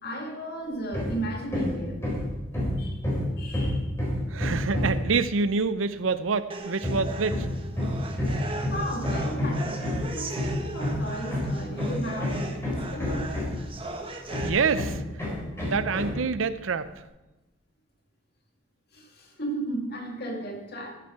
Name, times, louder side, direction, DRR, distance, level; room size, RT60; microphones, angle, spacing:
voice 1, 0.0-2.1 2.8-3.0 3.4-3.9 8.7-13.3 18.9-20.9, right 1 dB, 55° left, 0 dB, 2.3 m, -35 dB
Hammer, 0.9-1.2 1.5-5.1 6.8-13.8 14.3-16.2, left 1 dB, 15° left, 4.1 m, -29 dB
voice 2, 4.3-7.5 14.4-15.0 15.6-16.9, right 4 dB, 90° right, 14 dB, 0.6 m, -26 dB
sound 1, 6.5-14.5, right 2 dB, 25° right, 1.1 m, -38 dB
13.5 x 7.6 x 4.6 m, 1.1 s
head